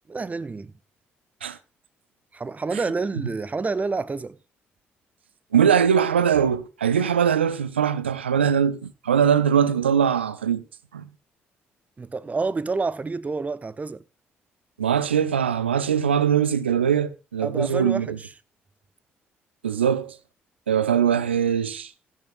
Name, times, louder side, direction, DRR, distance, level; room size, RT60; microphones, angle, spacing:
voice 1, 0.1-0.7 2.3-4.4 12.0-14.0 17.4-18.3, right 4 dB, 25° right, 0.7 m, -28 dB
voice 2, 5.5-10.6 10.9-11.0 14.8-18.2 19.6-20.2 20.7-21.9, right 8 dB, 85° right, 0.5 m, -21 dB
16.5 x 12.0 x 2.6 m
figure-of-eight pair, 45°, 6 cm